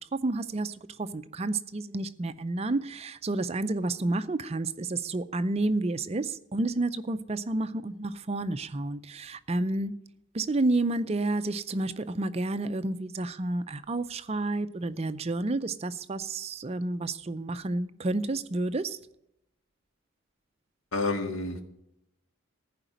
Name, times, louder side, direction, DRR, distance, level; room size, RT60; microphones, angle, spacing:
voice 1, 0.2-9.9 10.3-19.0, right 2 dB, 30° right, 0.5 m, -30 dB
voice 2, 20.9-21.6, left 3 dB, 80° left, 1.8 m, -29 dB
15.0 x 5.0 x 9.0 m
head